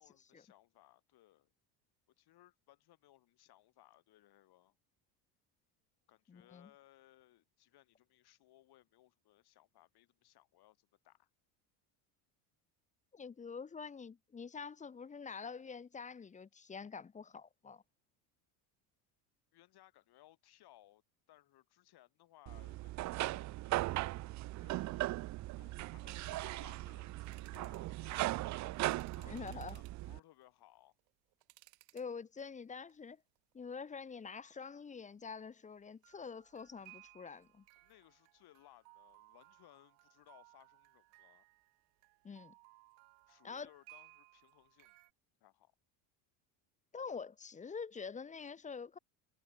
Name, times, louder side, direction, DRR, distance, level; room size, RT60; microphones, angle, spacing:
voice 1, 0.0-1.5 2.2-4.7 6.1-11.3 19.5-21.0 21.3-23.5 24.6-25.2 25.6-28.5 29.1-31.0 37.8-41.5 43.3-44.9 45.4-45.7, left 15 dB, 55° left, 1.9 m, -64 dB
voice 2, 6.3-6.7 13.1-17.8 29.3-29.8 31.9-33.2 33.5-37.6 42.2-42.5 43.4-43.7 46.9-49.0, left 5 dB, 15° left, 0.6 m, -46 dB
sound 1, 22.5-30.2, right 18 dB, 40° right, 0.4 m, -38 dB
sound 2, 27.2-27.9 28.7-30.1 30.7-32.1 32.4-32.9 33.4-33.5 36.0-45.1, right 30 dB, 80° right, 5.4 m, -63 dB
supercardioid pair, 100°, 47 cm